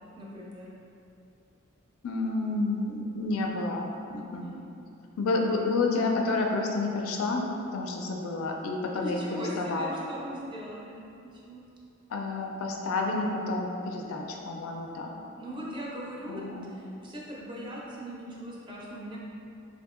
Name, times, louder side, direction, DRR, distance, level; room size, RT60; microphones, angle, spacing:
voice 1, 0.2-0.7 4.4-4.6 8.9-11.6 15.4-16.4 16.7-19.2, equal, 25° right, -5 dB, 0.4 m, -39 dB
voice 2, 2.0-4.5 5.2-7.4 7.7-10.0 12.1-15.1 16.3-16.6, left 3 dB, 80° left, 1 dB, 0.4 m, -30 dB
3.5 x 2.6 x 2.4 m, 2.7 s
head